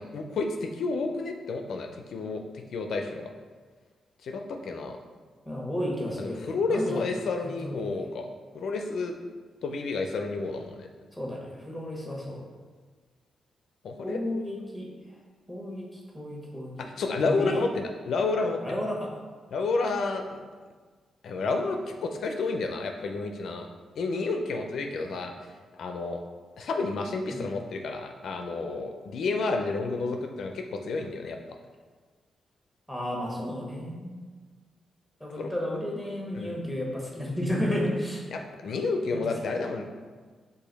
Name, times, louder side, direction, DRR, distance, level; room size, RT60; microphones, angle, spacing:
voice 1, 0.0-3.3 4.2-5.0 6.2-8.3 8.5-9.2 9.6-10.9 13.8-14.2 16.8-18.6 19.5-20.4 21.2-23.7 24.0-25.3 25.8-26.2 26.6-31.4 35.4-35.5 36.3-36.5 38.3-39.8, left 3 dB, 75° left, 4 dB, 0.4 m, -30 dB
voice 2, 5.4-7.0 7.4-7.8 11.1-12.4 14.0-14.9 15.5-16.7 17.2-17.6 18.6-19.1 27.3-27.5 32.9-34.2 35.2-38.2 39.1-39.2, left 1 dB, 5° right, -2 dB, 1.1 m, -32 dB
4.8 x 2.5 x 4.0 m, 1.5 s
cardioid pair, 85°, 0 cm